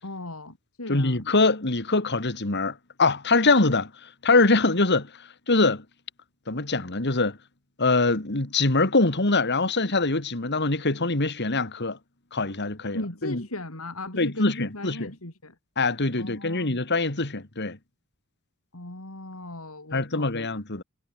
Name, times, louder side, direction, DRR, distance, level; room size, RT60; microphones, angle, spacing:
voice 1, 0.0-1.3 12.9-15.5 16.2-16.8 18.7-20.5, left 2 dB, 80° left, 4.3 m, -37 dB
voice 2, 0.9-5.1 5.5-5.8 6.5-7.4 7.8-12.0 12.3-13.4 14.2-15.1 15.8-17.8 19.9-20.8, left 3 dB, 55° left, 2.7 m, -23 dB
head